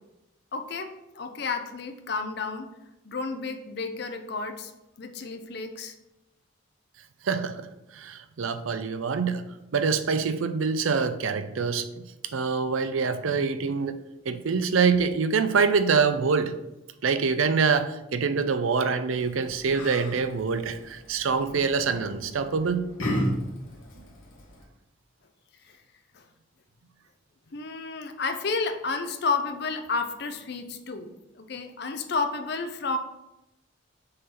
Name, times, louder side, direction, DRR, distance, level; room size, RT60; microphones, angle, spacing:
voice 1, 0.5-2.7 3.0-4.7 5.0-5.9 26.1-26.2 27.5-31.1 31.4-33.0, left 4 dB, 55° left, 6 dB, 0.6 m, -31 dB
voice 2, 7.2-9.4 9.7-12.0 12.3-14.0 14.3-16.5 17.0-22.9, right 5 dB, 85° right, 10 dB, 0.5 m, -25 dB
Yell, 19.1-24.6, equal, 75° left, 1.5 m, -35 dB
6.5 x 3.8 x 4.3 m, 0.95 s
head